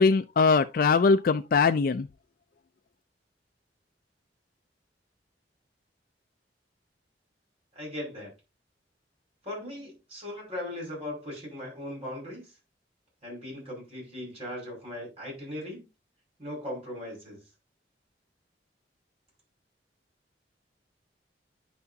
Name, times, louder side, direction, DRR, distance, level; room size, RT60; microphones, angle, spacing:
voice 1, 0.0-2.0, left 4 dB, 55° left, 0.4 m, -21 dB
voice 2, 7.8-8.3 9.4-12.5 13.2-15.9 16.4-17.4, left 1 dB, 35° right, 5.5 m, -38 dB
9.7 x 6.0 x 2.7 m
head